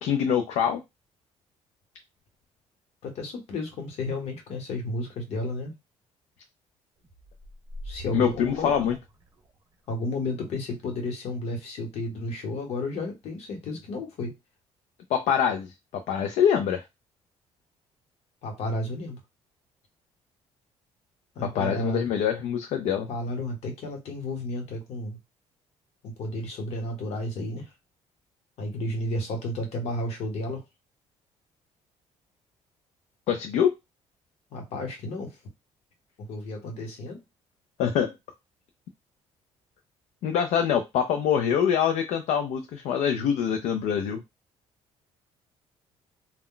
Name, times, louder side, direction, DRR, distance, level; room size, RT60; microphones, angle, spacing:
voice 1, 0.0-0.8 8.1-9.0 15.1-16.8 21.4-23.1 33.3-33.7 37.8-38.1 40.2-44.2, left 8 dB, 80° left, 5 dB, 0.4 m, -25 dB
voice 2, 3.0-5.7 7.9-8.7 9.9-14.3 18.4-19.2 21.4-22.0 23.1-25.2 26.0-27.7 28.6-30.6 34.5-35.3 36.2-37.2, left 2 dB, 65° left, 4 dB, 1.0 m, -32 dB
sound 1, 7.0-9.7, equal, 30° right, 0.8 m, -43 dB
2.2 x 2.1 x 3.7 m, 0.22 s
cardioid pair, 150°, 12 cm